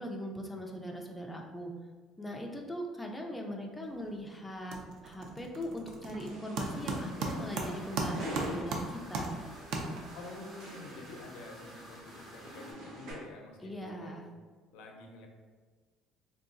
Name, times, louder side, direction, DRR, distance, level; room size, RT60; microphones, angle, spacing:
voice 1, 0.0-1.7 2.2-4.8 5.0-10.0 13.6-14.2, equal, 5° left, 0 dB, 0.3 m, -40 dB
sound 1, 3.8-4.2 4.5-10.3, right 3 dB, 60° right, 0.4 m, -37 dB
sound 2, 6.2-13.1, right 1 dB, 80° right, 0.9 m, -46 dB
sound 3, 6.6-12.7, equal, 30° right, 1.3 m, -53 dB
voice 2, 10.1-14.2 14.7-15.3, left 2 dB, 90° left, 2 dB, 0.5 m, -48 dB
3.7 x 2.2 x 2.5 m, 1.4 s
cardioid pair, 150°, 0 cm